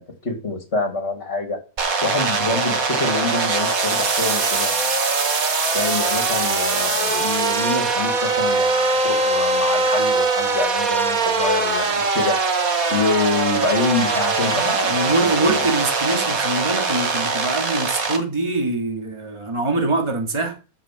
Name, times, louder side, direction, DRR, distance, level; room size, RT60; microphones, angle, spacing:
voice 1, 0.0-1.6 2.0-4.9 5.7-12.4 12.9-14.9 15.2-15.6, left 3 dB, 45° left, 2.5 m, -26 dB
sound 1, 1.8-18.2, right 3 dB, 70° right, 2.3 m, -21 dB
voice 2, 14.5-20.6, right 2 dB, 20° right, 2.1 m, -24 dB
14.0 x 6.0 x 7.4 m
omnidirectional pair, 1.6 m